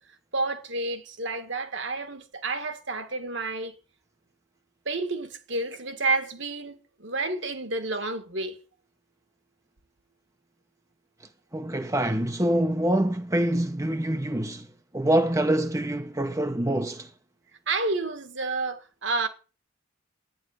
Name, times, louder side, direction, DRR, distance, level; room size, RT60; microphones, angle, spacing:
voice 1, 0.3-3.7 4.8-8.6 17.7-19.3, right 3 dB, 60° right, 1.7 m, -30 dB
voice 2, 11.5-14.7 14.9-17.1, right 1 dB, 15° right, 0.7 m, -25 dB
11.5 x 9.9 x 6.4 m
head